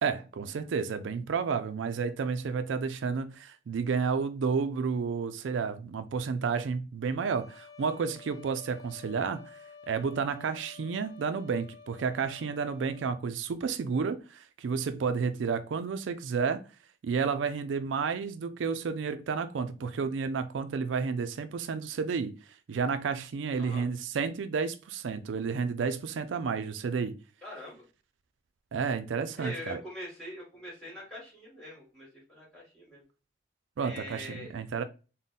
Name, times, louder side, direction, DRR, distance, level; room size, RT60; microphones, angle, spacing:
voice 1, 0.0-9.6 9.9-16.6 17.0-22.3 22.7-27.2 28.7-29.8 33.8-34.8, right 5 dB, 90° right, 0.4 m, -31 dB
sound 1, 7.2-13.2, left 5 dB, 70° left, 0.7 m, -51 dB
voice 2, 27.4-27.8 29.4-33.0 33.8-34.5, left 1 dB, 5° left, 1.9 m, -43 dB
3.6 x 2.1 x 4.0 m
head